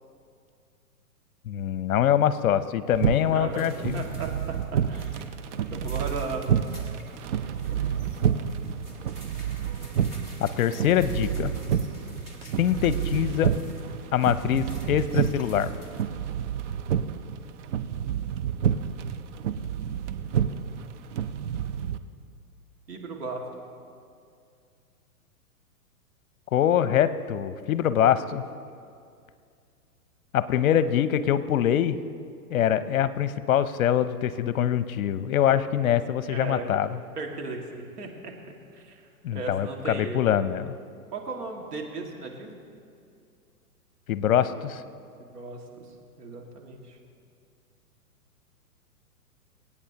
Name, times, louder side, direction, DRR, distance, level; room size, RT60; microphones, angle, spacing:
voice 1, 1.5-4.0 10.4-11.5 12.6-13.5 14.1-15.7 26.5-28.4 30.3-32.0 32.5-36.9 39.2-40.7 44.1-44.8, left 10 dB, 65° left, 14 dB, 0.7 m, -24 dB
sound 1, 2.9-22.0, right 8 dB, 50° right, 0.6 m, -29 dB
voice 2, 3.3-5.2 5.7-6.5 7.7-8.5 22.9-23.4 30.6-30.7 36.3-36.8 37.2-38.3 38.7-40.3 41.1-42.6 45.2-45.6 46.2-47.0, right 3 dB, 80° right, 0 dB, 2.1 m, -36 dB
sound 2, 3.5-16.0, equal, 10° right, 0.3 m, -50 dB
24.5 x 8.6 x 2.9 m, 2.3 s
hypercardioid pair, 130°, 46 cm